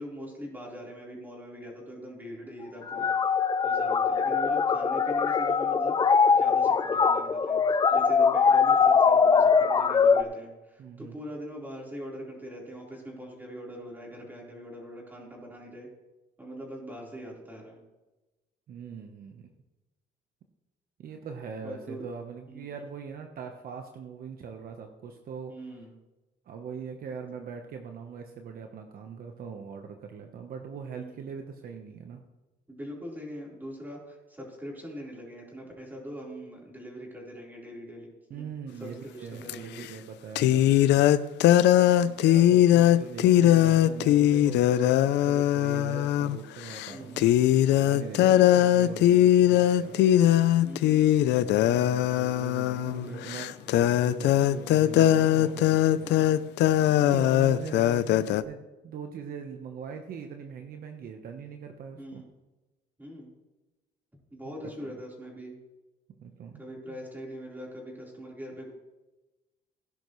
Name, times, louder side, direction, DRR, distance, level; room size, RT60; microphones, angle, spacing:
voice 1, 0.0-3.1 3.6-7.6 7.9-15.9 16.4-17.8 21.6-22.0 22.5-22.7 25.5-25.9 30.9-31.2 32.7-38.5 38.8-39.9 41.6-42.1 42.9-43.3 46.9-47.3 48.1-48.4 50.6-51.1 51.7-51.8 52.8-53.2 56.0-56.3 56.9-57.3 62.0-62.3 63.0-63.3 64.3-65.5 66.6-68.7, equal, 10° right, -3 dB, 4.1 m, -42 dB
sound 1, 2.9-10.2, left 5 dB, 25° left, 0.5 m, -22 dB
voice 2, 10.8-11.2 18.7-19.5 21.0-25.5 26.5-32.2 38.3-40.8 41.9-44.9 45.2-47.3 47.8-50.0 51.6-56.2 57.0-62.2 64.8-65.0 66.2-66.6 66.9-67.0, right 6 dB, 55° right, 4 dB, 1.1 m, -41 dB
sound 2, 39.5-39.6 40.4-46.4 46.7-46.9 47.2-58.4, left 12 dB, 80° left, 0.5 m, -21 dB
17.0 x 10.5 x 3.2 m, 1.1 s
cardioid pair, 130°, 18 cm